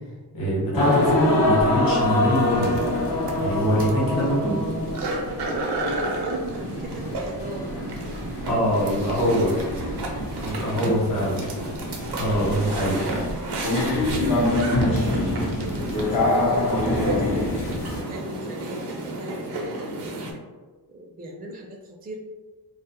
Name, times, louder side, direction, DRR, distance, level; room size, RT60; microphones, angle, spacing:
voice 1, 0.3-2.8 3.4-4.6 8.4-9.5 10.4-11.5 12.2-13.1, equal, 55° left, -5 dB, 1.0 m, -23 dB
sound 1, 0.7-18.0, left 2 dB, 80° left, 0.8 m, -26 dB
sound 2, 2.3-20.3, right 2 dB, 70° right, 0.6 m, -31 dB
voice 2, 5.4-7.7 8.5-10.0 10.4-10.7 13.8-17.6 18.0-20.2 20.9-22.2, right 1 dB, 25° right, 0 dB, 0.4 m, -39 dB
2.4 x 2.0 x 2.8 m, 1.3 s
cardioid pair, 70°, 41 cm